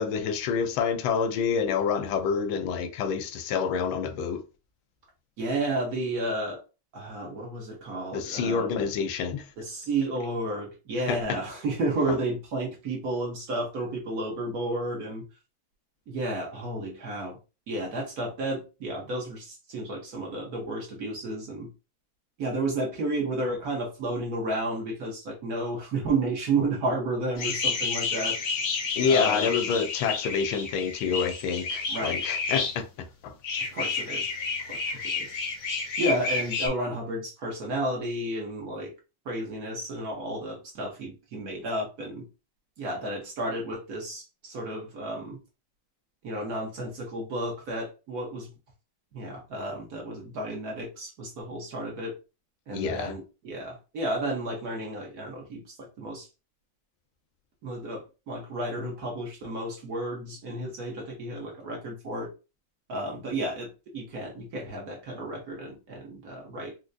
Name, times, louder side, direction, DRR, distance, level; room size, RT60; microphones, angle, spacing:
voice 1, 0.0-4.4 8.1-9.5 11.1-11.2 29.0-33.3 34.9-35.0 52.7-53.1, left 6 dB, 85° left, 1.4 m, -28 dB
voice 2, 5.4-6.6 6.9-8.7 9.6-15.2 16.1-17.4 17.7-21.7 22.4-28.4 29.0-29.5 31.9-32.2 33.7-34.3 34.6-35.3 36.0-38.9 39.2-42.2 42.8-45.4 46.2-48.5 49.1-52.2 52.7-56.3 57.6-62.3 62.9-66.7, right 1 dB, 55° right, 1.2 m, -32 dB
sound 1, 27.4-32.8 33.4-36.7, left 4 dB, 55° left, 0.8 m, -30 dB
4.4 x 2.1 x 2.5 m
omnidirectional pair, 2.2 m